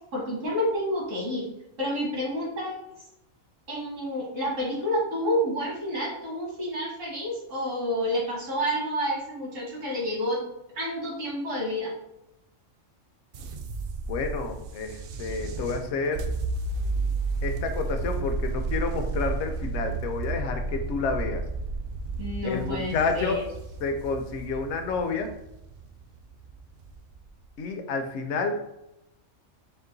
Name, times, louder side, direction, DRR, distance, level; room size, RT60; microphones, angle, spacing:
voice 1, 0.1-1.5 1.8-2.8 3.7-10.4 10.8-11.9 22.2-23.4, equal, 80° right, -4 dB, 2.0 m, -29 dB
sound 1, 13.3-27.5, right 3 dB, 65° right, 0.6 m, -32 dB
voice 2, 14.1-16.3 17.4-21.4 22.4-23.4 23.8-25.3 27.6-28.6, left 4 dB, 65° left, 5 dB, 0.9 m, -29 dB
4.5 x 2.5 x 3.8 m, 0.86 s
omnidirectional pair, 1.3 m